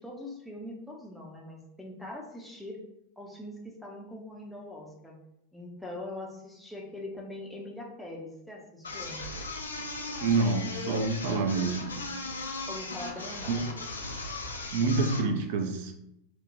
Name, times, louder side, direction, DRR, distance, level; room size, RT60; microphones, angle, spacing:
voice 1, 0.0-2.8 3.2-5.2 5.5-9.2 12.7-13.7, left 1 dB, ahead, -2 dB, 0.5 m, -42 dB
sound 1, 8.8-15.3, left 3 dB, 75° left, 0.3 m, -37 dB
voice 2, 10.2-12.0 13.5-13.6 14.7-15.9, right 3 dB, 50° right, 4 dB, 0.4 m, -27 dB
3.0 x 2.1 x 2.5 m, 0.81 s
figure-of-eight pair, 90°, 0 cm